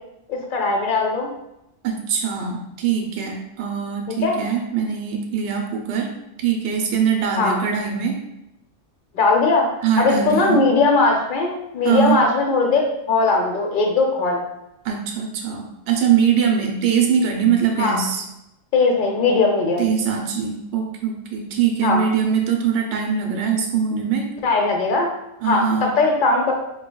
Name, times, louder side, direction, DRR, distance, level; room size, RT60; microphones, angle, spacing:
voice 1, 0.3-1.3 4.2-4.4 7.4-7.6 9.1-9.7 10.0-14.4 17.8-18.0 18.7-19.9 21.8-22.0 24.4-25.1 25.4-26.5, left 3 dB, 55° left, 1 dB, 0.6 m, -19 dB
voice 2, 1.8-6.1 6.4-8.2 9.8-10.6 11.8-12.2 14.8-18.2 19.8-24.3 25.4-25.9, right 7 dB, 65° right, 1 dB, 0.8 m, -22 dB
4.6 x 3.0 x 2.2 m, 0.87 s
omnidirectional pair, 1.3 m